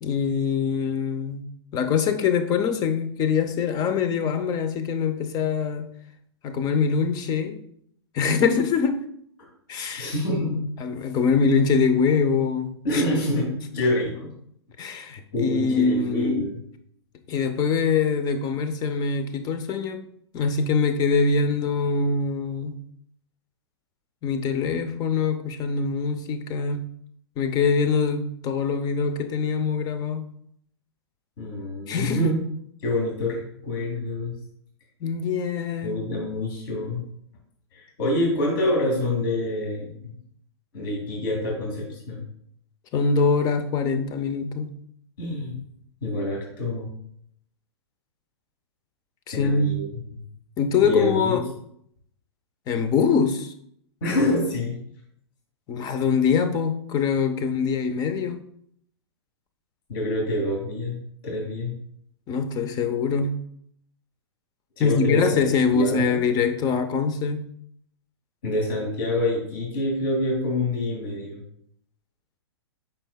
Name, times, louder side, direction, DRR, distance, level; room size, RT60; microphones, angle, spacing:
voice 1, 0.0-1.4 1.7-5.9 6.4-7.6 8.1-9.0 9.7-10.1 10.8-13.0 14.8-16.4 17.3-20.0 20.3-22.8 24.2-26.9 27.4-30.2 31.9-32.3 35.0-36.0 42.9-44.8 49.3-49.7 50.6-51.4 52.7-53.5 55.7-58.4 62.3-63.3 64.8-67.5, left 5 dB, 25° left, 0.7 m, -23 dB
voice 2, 9.9-10.6 12.8-14.3 15.3-16.6 31.4-32.4 32.8-34.3 35.8-37.0 37.7-40.2 40.7-42.2 45.2-45.5 46.0-46.9 49.3-49.8 50.1-50.2 50.8-51.4 54.0-54.8 59.9-61.0 61.2-61.7 64.8-65.5 65.7-66.2 68.4-71.4, left 1 dB, 50° left, 2.5 m, -26 dB
8.7 x 5.6 x 2.3 m
figure-of-eight pair, 115°, 14 cm